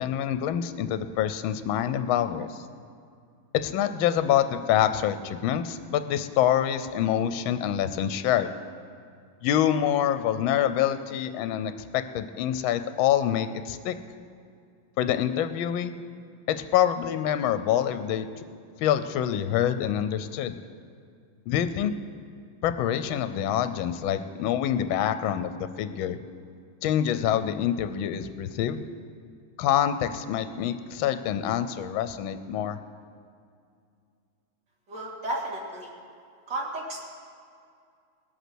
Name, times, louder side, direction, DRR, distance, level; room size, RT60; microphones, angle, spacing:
voice 1, 0.0-2.6 3.5-8.5 9.4-14.0 15.0-15.9 16.5-18.4 18.8-20.6 21.5-21.9 22.6-26.2 26.8-28.8 29.6-32.8, left 10 dB, 80° left, 11 dB, 1.4 m, -26 dB
voice 2, 34.9-35.9 36.5-37.1, right 1 dB, 55° right, -3 dB, 3.0 m, -33 dB
19.5 x 8.2 x 6.1 m, 2.3 s
omnidirectional pair, 2.3 m